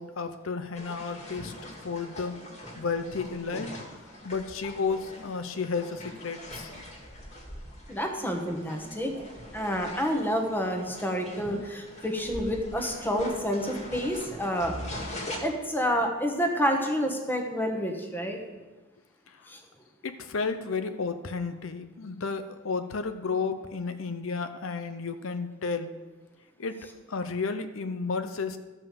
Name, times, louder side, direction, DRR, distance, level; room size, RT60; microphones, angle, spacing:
voice 1, 0.0-1.5 1.8-2.4 2.8-3.7 4.2-6.9 19.3-19.5 20.0-25.9 26.6-28.6, left 4 dB, 80° left, 9 dB, 0.7 m, -32 dB
sound 1, 0.7-15.4, left 1 dB, 35° left, 2.1 m, -42 dB
voice 2, 7.9-9.1 9.5-14.8 15.1-18.4 19.5-19.6, equal, 10° left, 3 dB, 1.3 m, -29 dB
13.0 x 5.5 x 7.0 m, 1.2 s
head